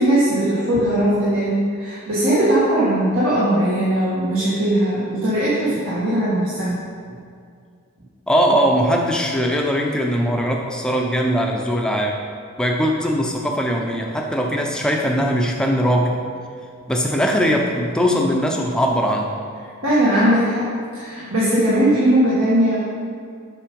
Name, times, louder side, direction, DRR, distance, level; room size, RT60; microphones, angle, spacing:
voice 1, 0.0-6.8 7.1-7.2 19.8-22.8, right 1 dB, 65° right, -9 dB, 1.7 m, -19 dB
voice 2, 8.3-12.2 12.6-16.2 16.9-19.3, equal, 5° left, 0 dB, 0.6 m, -20 dB
7.3 x 5.6 x 5.3 m, 2.2 s
head